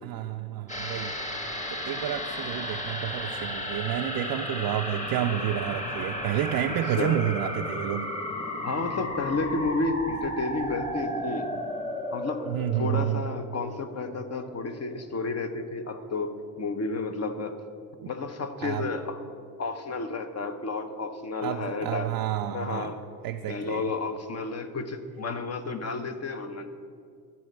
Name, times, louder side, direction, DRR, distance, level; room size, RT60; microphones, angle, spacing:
voice 1, 0.0-1.1 1.7-8.1 12.5-13.3 18.0-18.1 18.6-18.9 21.4-22.9 23.2-23.9, right 12 dB, 55° right, 4 dB, 0.5 m, -30 dB
sound 1, 0.7-15.3 15.6-15.7, left 1 dB, 15° left, 1.3 m, -34 dB
voice 2, 8.6-11.5 12.1-17.6 18.1-19.2 19.6-22.1 22.5-23.0 23.5-26.7, left 3 dB, 35° left, 8 dB, 0.8 m, -31 dB
11.0 x 4.1 x 6.6 m, 2.2 s
hypercardioid pair, 60°, 43 cm